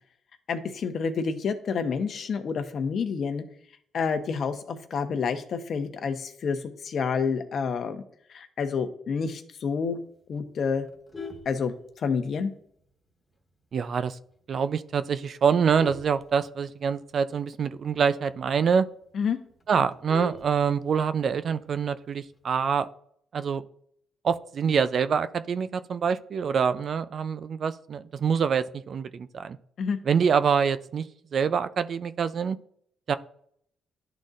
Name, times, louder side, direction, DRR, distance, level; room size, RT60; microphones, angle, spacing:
voice 1, 0.5-3.4 3.9-8.0 8.3-10.0 10.3-10.9 11.4-12.5 19.1-19.4 29.8-30.0, left 5 dB, 55° left, 8 dB, 0.9 m, -29 dB
Vehicle horn car horn honking, 10.9-12.3 12.8-13.1 13.4-13.5 13.9-14.0 14.3-14.6 15.2-17.0 17.4-17.5 17.8-17.9 18.3-18.4 18.7-18.8 19.1-21.1 22.3-22.8, left 4 dB, 20° left, 1.4 m, -42 dB
voice 2, 13.7-14.2 14.5-18.9 19.7-22.9 23.3-23.6 24.2-29.6 30.1-31.0 31.3-32.6 33.1-33.2, right 6 dB, 55° right, 13 dB, 0.4 m, -25 dB
11.5 x 4.0 x 2.5 m, 0.65 s
cardioid pair, 90°, 0 cm